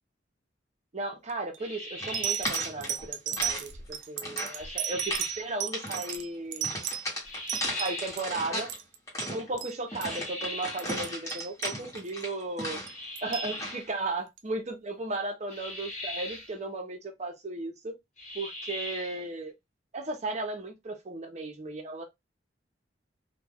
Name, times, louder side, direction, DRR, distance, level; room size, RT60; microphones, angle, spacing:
voice 1, 0.9-6.7 7.8-8.7 9.3-12.8 13.2-18.0 18.3-19.5 19.9-22.0, right 2 dB, 40° right, 0.6 m, -35 dB
sound 1, 1.3-1.6 2.1-8.3 8.6-9.0 9.2-9.3 9.6-9.7 10.0-10.2 10.6-12.2 12.9-13.5 14.4-14.5, right 9 dB, 85° right, 0.4 m, -34 dB
sound 2, 1.6-2.6 4.5-5.5 7.2-8.3 9.9-11.0 12.8-13.9 15.5-16.5 18.2-19.2, left 1 dB, 45° left, 1.0 m, -39 dB
sound 3, 2.0-3.6 3.9-4.6 4.9-5.3 5.7-6.2 6.6-8.8 9.1-13.1 13.4-13.9, left 1 dB, 15° left, 1.0 m, -36 dB
2.2 x 2.1 x 3.3 m
head